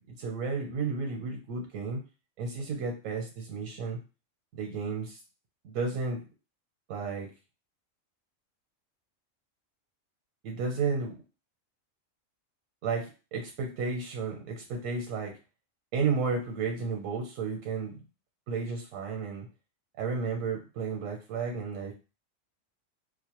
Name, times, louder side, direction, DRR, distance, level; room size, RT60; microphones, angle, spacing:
voice 1, 0.1-2.0 2.4-4.0 4.5-5.2 5.6-6.2 6.9-7.3 10.4-11.2 12.8-15.3 15.9-18.0 18.5-19.5 20.0-21.9, right 4 dB, 80° right, 2 dB, 1.0 m, -32 dB
2.3 x 2.0 x 2.8 m, 0.31 s
omnidirectional pair, 1.4 m